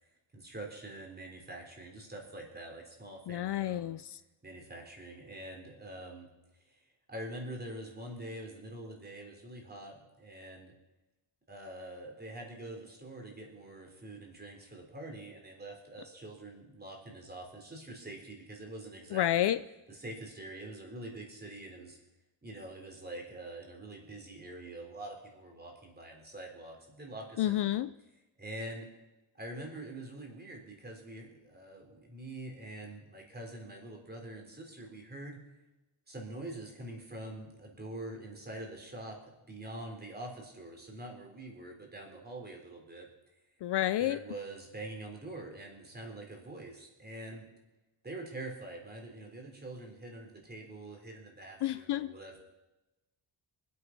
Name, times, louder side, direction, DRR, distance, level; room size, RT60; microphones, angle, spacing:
voice 1, 0.3-4.0 4.4-6.3 6.6-6.8 7.1-10.7 11.5-19.4 19.9-22.0 22.4-27.8 28.4-28.9 29.4-35.4 36.1-43.1 44.0-47.5 48.0-52.4, right 1 dB, 20° right, 1 dB, 3.7 m, -45 dB
voice 2, 3.3-4.2 19.1-19.6 27.4-27.9 43.6-44.2 51.6-52.1, left 13 dB, 60° left, 14 dB, 0.5 m, -30 dB
24.5 x 8.6 x 5.9 m, 1.0 s
wide cardioid pair, 140°, 48 cm